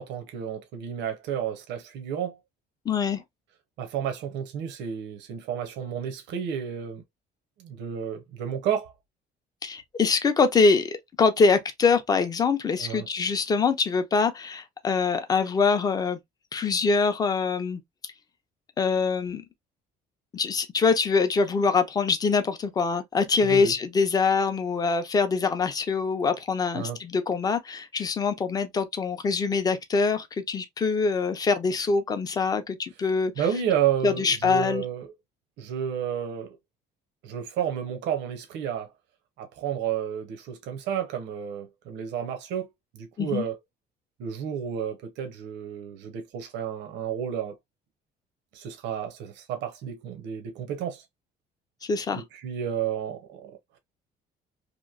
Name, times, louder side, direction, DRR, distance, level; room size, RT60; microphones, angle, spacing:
voice 1, 0.0-2.4 3.8-7.0 7.6-8.9 12.8-13.1 23.4-23.7 26.7-27.0 33.4-35.1 35.6-36.6 37.2-38.9 39.4-43.5 44.2-47.5 48.5-51.0 52.2-53.5, right 8 dB, 80° right, 0.7 m, -31 dB
voice 2, 2.9-3.2 9.6-16.2 16.5-17.8 18.8-19.4 20.3-33.3 34.0-34.8 43.2-43.4 51.8-52.2, left 4 dB, 20° left, 0.4 m, -24 dB
2.9 x 2.6 x 2.4 m
cardioid pair, 170°, 18 cm